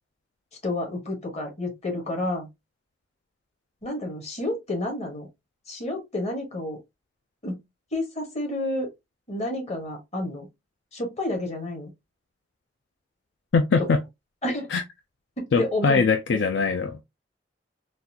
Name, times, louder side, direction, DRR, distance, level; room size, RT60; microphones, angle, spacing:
voice 1, 0.6-2.5 3.8-5.3 5.7-6.8 7.4-7.6 7.9-8.9 9.3-10.5 10.9-11.9 13.8-13.9 14.4-14.7 15.4-16.0 16.3-16.5, left 1 dB, 40° left, 1.3 m, -30 dB
voice 2, 13.5-14.0 14.7-14.8 15.5-17.0, left 4 dB, 75° left, 0.4 m, -22 dB
4.0 x 2.4 x 2.7 m
head